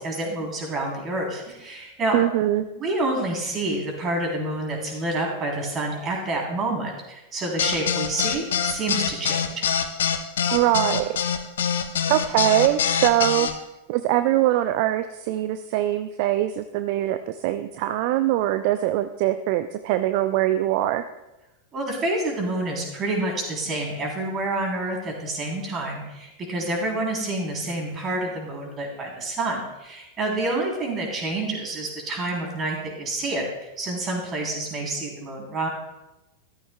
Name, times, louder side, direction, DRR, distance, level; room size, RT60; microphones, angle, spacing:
voice 1, 0.0-2.2 2.7-9.7 21.7-33.5 33.8-35.7, right 2 dB, 25° right, 1 dB, 3.3 m, -28 dB
voice 2, 2.1-2.6 10.5-11.1 12.1-13.5 13.9-21.1, right 14 dB, 45° right, 11 dB, 0.5 m, -22 dB
sound 1, 7.6-13.5, left 8 dB, 60° left, 0.8 m, -24 dB
14.0 x 13.0 x 2.2 m, 0.97 s
figure-of-eight pair, 90°, 0 cm